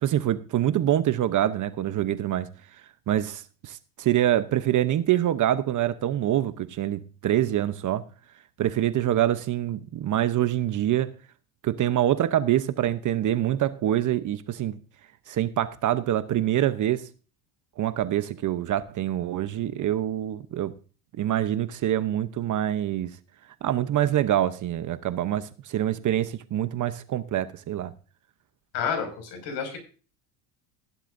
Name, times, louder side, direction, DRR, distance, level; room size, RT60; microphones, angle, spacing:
voice 1, 0.0-2.5 3.1-8.0 8.6-11.1 11.6-14.8 15.3-17.1 17.8-20.7 21.2-23.1 23.6-27.9, right 12 dB, 40° right, 0.8 m, -25 dB
voice 2, 28.7-29.8, left 6 dB, 60° left, 5.9 m, -30 dB
15.0 x 11.5 x 2.6 m
supercardioid pair, 115°, 49 cm